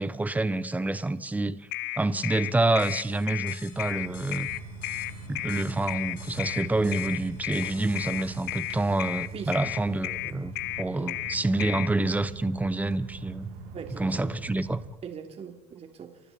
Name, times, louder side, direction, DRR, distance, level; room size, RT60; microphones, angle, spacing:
voice 1, 0.0-1.6 2.0-4.5 5.3-13.5 14.0-14.8, right 2 dB, 10° right, 1.1 m, -27 dB
sound 1, 1.7-11.9, left 19 dB, 70° left, 1.2 m, -33 dB
sound 2, 2.8-9.9, left 11 dB, 50° left, 2.7 m, -51 dB
sound 3, 3.7-14.9, right 4 dB, 80° right, 6.7 m, -42 dB
voice 2, 13.7-14.3 15.0-16.2, right 7 dB, 40° right, 3.3 m, -41 dB
28.5 x 24.5 x 4.3 m
supercardioid pair, 110°, 17 cm